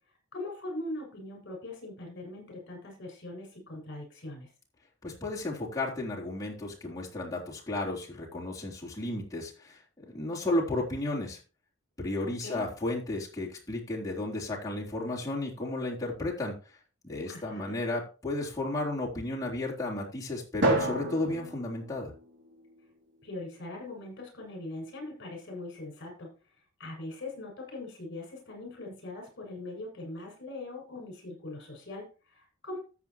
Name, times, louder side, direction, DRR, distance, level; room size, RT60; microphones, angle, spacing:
voice 1, 0.3-4.5 12.2-12.7 17.3-17.8 23.2-32.8, left 2 dB, 55° left, 0 dB, 7.1 m, -41 dB
voice 2, 5.0-11.4 12.0-16.5 17.0-22.1, left 2 dB, 15° left, -5 dB, 3.7 m, -33 dB
Drum, 20.6-22.9, right 2 dB, 60° right, 3.9 m, -31 dB
14.0 x 7.9 x 3.1 m, 0.34 s
head